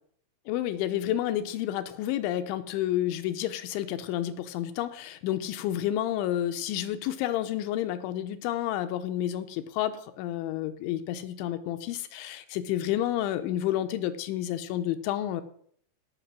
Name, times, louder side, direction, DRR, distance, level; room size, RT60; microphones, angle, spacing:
voice 1, 0.5-15.4, left 12 dB, 80° left, 10 dB, 2.9 m, -30 dB
17.5 x 6.3 x 6.0 m, 0.62 s
omnidirectional pair, 5.7 m